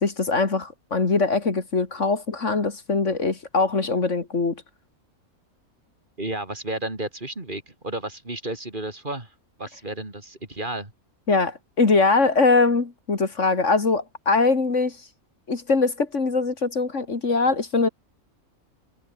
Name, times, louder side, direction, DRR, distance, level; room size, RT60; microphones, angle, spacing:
voice 1, 0.0-4.6 11.3-15.0 15.5-17.9, left 3 dB, 55° left, 2.6 m, -22 dB
voice 2, 6.2-10.9, right 2 dB, 35° right, 3.4 m, -32 dB
omnidirectional pair, 1.5 m